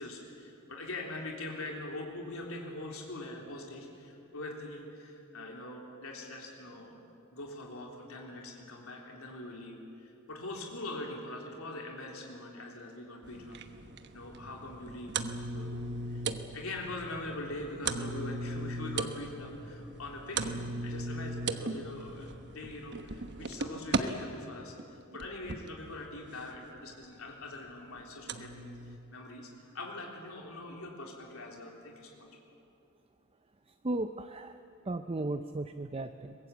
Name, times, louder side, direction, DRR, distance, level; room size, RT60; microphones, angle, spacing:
voice 1, 0.0-7.0 7.3-13.6 14.1-32.3, left 2 dB, 80° left, 0 dB, 3.6 m, -43 dB
sound 1, 13.2-24.0 24.8-25.7 26.9-27.0 27.4-27.5 28.3-29.0, right 3 dB, 55° right, 1.1 m, -37 dB
voice 2, 33.8-34.6 34.9-36.4, right 2 dB, 25° right, 9 dB, 0.6 m, -35 dB
23.5 x 20.5 x 8.4 m, 2.7 s
head